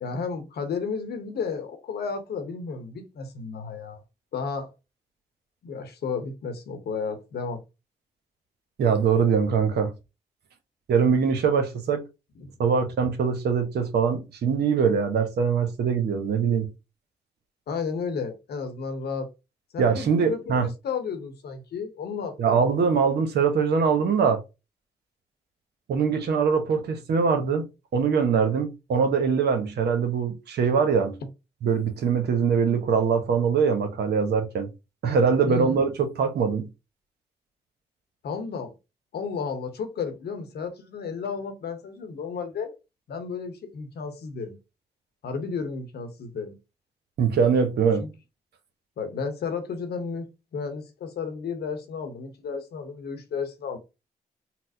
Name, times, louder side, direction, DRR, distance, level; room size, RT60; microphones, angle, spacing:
voice 1, 0.0-4.0 4.3-4.7 5.6-7.6 12.4-12.5 17.7-19.3 19.7-22.6 35.5-35.8 38.2-38.7 39.1-42.7 43.1-44.6 45.2-46.6 48.0-48.1 49.0-50.3 50.5-53.8, left 5 dB, 65° left, 0.9 m, -33 dB
voice 2, 8.8-9.9 10.9-12.0 12.6-16.7 19.8-20.7 22.4-24.4 25.9-27.7 27.9-31.2 31.6-34.7 35.0-36.7 47.2-48.1, right 6 dB, 70° right, 0.8 m, -22 dB
4.1 x 2.0 x 2.6 m
hypercardioid pair, 40°, 18 cm